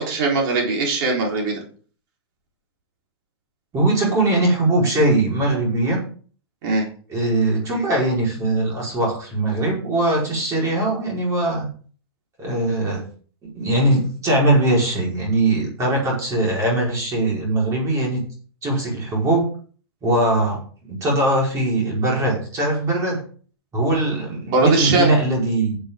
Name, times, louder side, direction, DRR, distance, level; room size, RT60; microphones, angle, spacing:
voice 1, 0.0-1.6 6.6-6.9 24.5-25.1, right 3 dB, 50° right, 0 dB, 4.2 m, -20 dB
voice 2, 3.7-6.0 7.1-11.7 12.4-13.0 13.4-18.2 18.6-19.5 20.0-20.6 20.9-23.2 23.7-25.8, right 2 dB, 20° right, -3 dB, 4.8 m, -21 dB
11.5 x 7.9 x 3.8 m, 0.42 s
hypercardioid pair, 140°, 14 cm